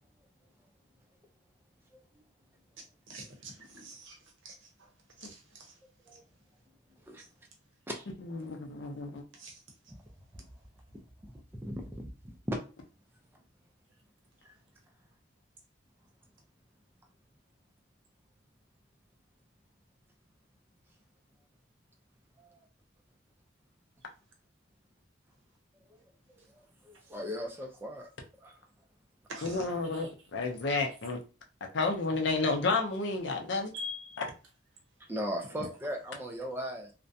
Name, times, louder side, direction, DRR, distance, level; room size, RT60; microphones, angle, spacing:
voice 1, 1.9-2.2 6.1-6.2 7.0-7.2 7.9-8.1 10.3-10.4 11.2-12.6 14.4-14.5 22.4-22.6 26.3-28.1 28.4-28.6 35.1-36.9, equal, 10° right, 0.3 m, -38 dB
voice 2, 3.1-4.9 5.2-5.8 7.2-7.3 9.3-9.6 26.9-27.0 29.3-30.1 33.7-34.2 35.5-35.7, left 1 dB, 75° right, 0.8 m, -45 dB
voice 3, 8.2-9.2 29.4-31.2 31.7-33.7, left 3 dB, 65° left, 0.5 m, -31 dB
2.4 x 2.1 x 2.6 m
head